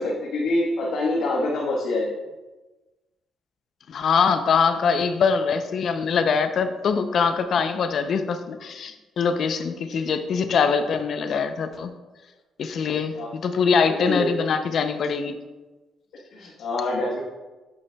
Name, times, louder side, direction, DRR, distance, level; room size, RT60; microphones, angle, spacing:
voice 1, 0.0-2.1 9.9-10.0 12.9-13.3 13.8-14.3 16.3-17.2, left 2 dB, 75° left, -4 dB, 1.1 m, -26 dB
voice 2, 3.9-11.9 12.6-15.4, left 5 dB, 60° left, 9 dB, 0.5 m, -23 dB
8.5 x 6.7 x 2.3 m, 1.2 s
cardioid pair, 90°, 0 cm